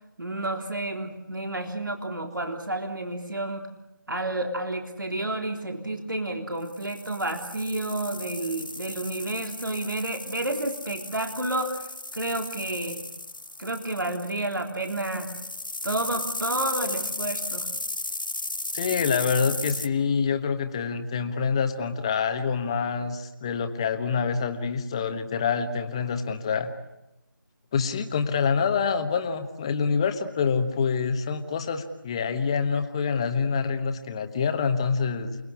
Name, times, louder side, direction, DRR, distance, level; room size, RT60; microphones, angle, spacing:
voice 1, 0.2-3.6 4.1-11.8 12.1-13.1 13.6-15.3 15.8-17.7, right 2 dB, 70° right, 4 dB, 3.6 m, -30 dB
sound 1, 6.7-19.9, left 2 dB, 70° left, 1.4 m, -35 dB
voice 2, 18.7-26.7 27.7-35.4, left 5 dB, 15° left, 7 dB, 1.3 m, -26 dB
29.0 x 20.0 x 9.8 m, 0.91 s
figure-of-eight pair, 160°, 11 cm